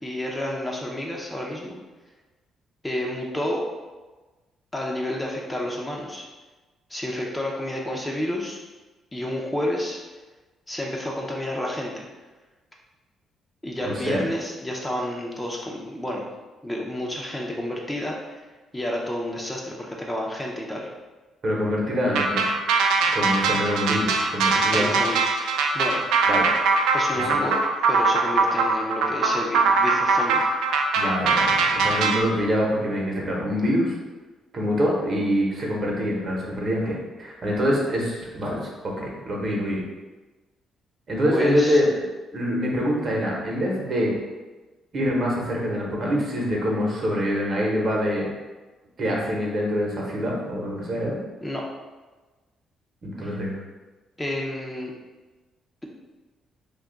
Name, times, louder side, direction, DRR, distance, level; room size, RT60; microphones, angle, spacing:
voice 1, 0.0-1.8 2.8-3.7 4.7-6.2 6.9-8.6 9.1-10.0 10.7-12.1 13.6-16.3 16.6-18.5 18.7-20.9 24.7-25.3 25.7-26.0 26.9-27.6 27.9-30.5 41.3-41.8 51.4-51.6 53.2-53.3 54.2-54.9, left 1 dB, 15° left, -2 dB, 0.5 m, -30 dB
voice 2, 13.8-14.2 21.4-22.4 23.1-24.9 26.3-26.5 27.1-27.4 31.0-33.9 34.5-38.6 39.0-39.8 41.1-41.9 42.3-44.1 44.9-48.3 49.0-51.2 53.0-53.6, equal, 50° right, -2 dB, 0.9 m, -25 dB
sound 1, 22.1-32.2, right 4 dB, 85° right, 0.3 m, -21 dB
2.7 x 2.3 x 3.8 m, 1.2 s
cardioid pair, 90°, 0 cm